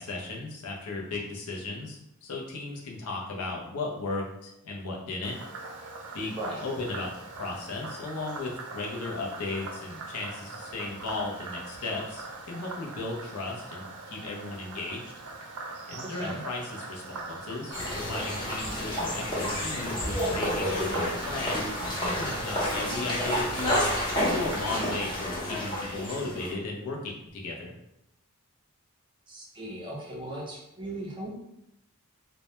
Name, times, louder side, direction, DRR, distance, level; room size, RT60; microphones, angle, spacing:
voice 1, 0.0-5.4 6.1-15.1 15.9-23.8 24.2-27.7, left 3 dB, 80° left, 0 dB, 0.5 m, -36 dB
Frog, 5.2-24.9, right 3 dB, 75° right, 0.4 m, -42 dB
voice 2, 16.0-16.4 29.3-31.4, right 1 dB, 20° right, -3 dB, 0.5 m, -37 dB
sound 1, 17.7-26.5, left 1 dB, 20° left, 0.7 m, -30 dB
2.1 x 2.0 x 2.9 m, 0.82 s
head